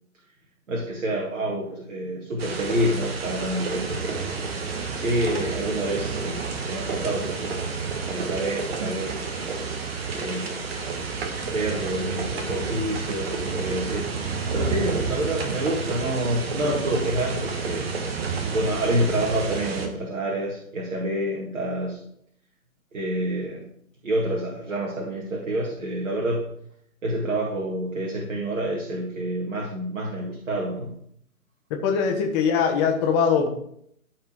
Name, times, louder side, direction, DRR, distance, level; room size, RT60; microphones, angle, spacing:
voice 1, 0.7-4.4 4.9-6.4 6.7-7.7 8.1-9.2 10.1-10.6 11.5-18.0 18.5-22.0 22.9-23.7 24.0-26.5 27.0-30.9, right 1 dB, 60° right, -1 dB, 2.3 m, -28 dB
sound 1, 2.4-19.9, right 4 dB, 45° right, 1.7 m, -30 dB
voice 2, 31.8-33.5, left 6 dB, 20° left, 2 dB, 1.5 m, -21 dB
14.0 x 4.8 x 4.7 m, 0.68 s
figure-of-eight pair, 140°, 43 cm